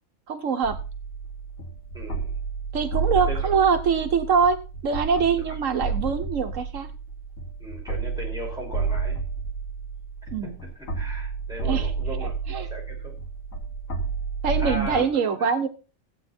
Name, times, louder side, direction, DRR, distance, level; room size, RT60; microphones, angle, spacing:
voice 1, 0.3-0.8 2.7-4.6 4.8-6.9 10.3-10.6 11.6-11.9 12.2-12.7 14.4-15.7, right 6 dB, 75° right, 7 dB, 1.3 m, -24 dB
sound 1, 0.6-15.0, right 5 dB, 90° left, 1.9 m, -31 dB
voice 2, 1.9-2.3 3.3-3.5 7.6-9.2 10.6-13.1 14.6-15.1, equal, 5° right, -3 dB, 5.3 m, -37 dB
15.0 x 8.6 x 4.3 m, 0.34 s
omnidirectional pair, 1.3 m